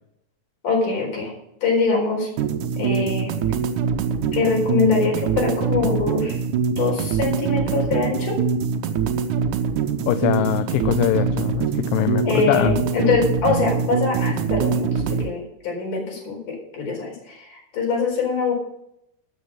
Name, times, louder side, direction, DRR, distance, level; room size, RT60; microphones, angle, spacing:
voice 1, 0.6-1.3 1.6-2.3 2.8-3.3 4.3-6.4 6.8-8.4 12.2-18.5, left 4 dB, 50° left, 0 dB, 5.7 m, -23 dB
sound 1, 2.4-15.3, right 6 dB, 85° right, 1.7 m, -23 dB
voice 2, 10.1-12.7, left 13 dB, 80° left, 10 dB, 2.6 m, -22 dB
13.0 x 8.3 x 6.2 m, 0.78 s
omnidirectional pair, 4.8 m